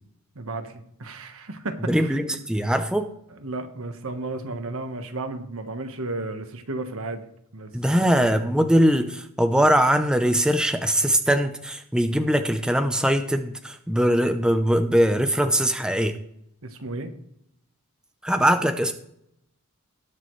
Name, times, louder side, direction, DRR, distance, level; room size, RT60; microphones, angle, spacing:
voice 1, 0.3-2.4 3.3-7.3 7.5-8.3 16.6-17.1, right 2 dB, 65° right, 7 dB, 1.3 m, -34 dB
voice 2, 1.9-3.1 7.7-16.2 18.2-18.9, equal, 5° right, 7 dB, 0.6 m, -21 dB
20.0 x 6.7 x 3.2 m, 0.77 s
head